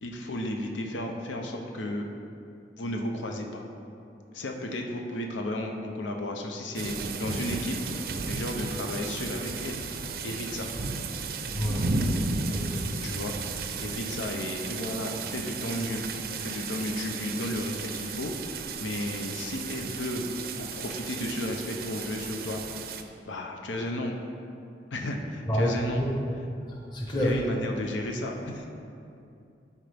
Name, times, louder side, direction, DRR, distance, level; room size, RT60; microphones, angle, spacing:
voice 1, 0.0-2.1 2.8-3.6 4.3-9.8 10.2-10.7 13.0-13.4 13.8-16.1 16.4-20.2 20.6-22.6 23.3-24.2 24.9-26.0 27.2-28.7, left 1 dB, 90° left, 2 dB, 0.7 m, -33 dB
sound 1, 6.8-23.0, right 4 dB, 55° right, 0.4 m, -34 dB
voice 2, 11.5-11.9 12.5-13.1 25.5-26.1 26.9-27.4, left 1 dB, 25° left, -3 dB, 1.1 m, -28 dB
12.5 x 4.4 x 3.4 m, 2.6 s
head